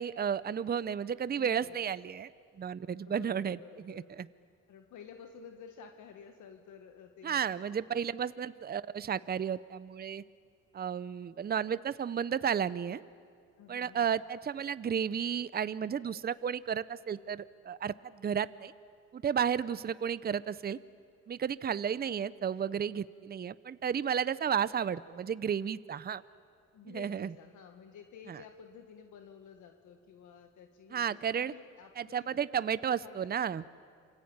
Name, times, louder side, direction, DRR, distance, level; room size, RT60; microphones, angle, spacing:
voice 1, 0.0-2.3 2.6-4.3 7.2-10.2 10.7-13.0 13.7-18.7 19.1-20.8 21.3-26.2 26.9-27.3 28.3-28.4 30.9-31.5 32.0-33.6, right 8 dB, 30° right, 16 dB, 0.7 m, -33 dB
voice 2, 1.3-1.8 3.1-4.1 4.7-7.4 7.7-8.0 13.6-14.2 26.7-33.3, left 7 dB, 75° left, 5 dB, 1.7 m, -52 dB
27.5 x 24.5 x 8.9 m, 2.2 s
cardioid pair, 90°, 30 cm